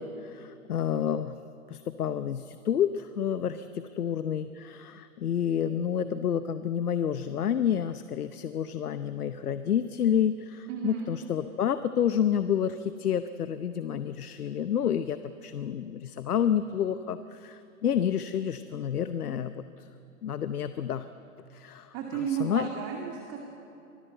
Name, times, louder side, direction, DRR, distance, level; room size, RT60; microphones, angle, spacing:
voice 1, 0.0-1.4 1.7-19.9 20.2-21.1 21.5-21.9 22.3-22.7, left 9 dB, 85° left, 12 dB, 0.9 m, -29 dB
voice 2, 10.7-11.1 21.9-23.4, right 8 dB, 35° right, 1 dB, 2.5 m, -33 dB
24.5 x 17.5 x 8.0 m, 2.8 s
hypercardioid pair, 120°, 44 cm